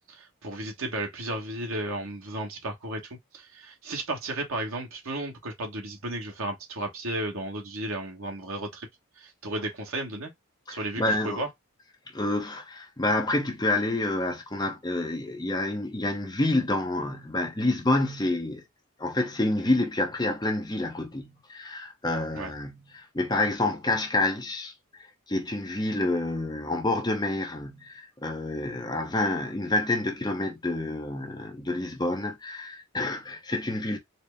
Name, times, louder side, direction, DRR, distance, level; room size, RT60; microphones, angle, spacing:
voice 1, 0.1-3.0 3.3-8.9 9.2-10.3 10.7-11.5 22.3-22.5, right 1 dB, 70° right, 1.1 m, -34 dB
voice 2, 10.7-11.4 12.1-18.6 19.0-24.7 25.3-34.0, left 2 dB, 20° left, 0.7 m, -28 dB
4.2 x 2.0 x 3.3 m
head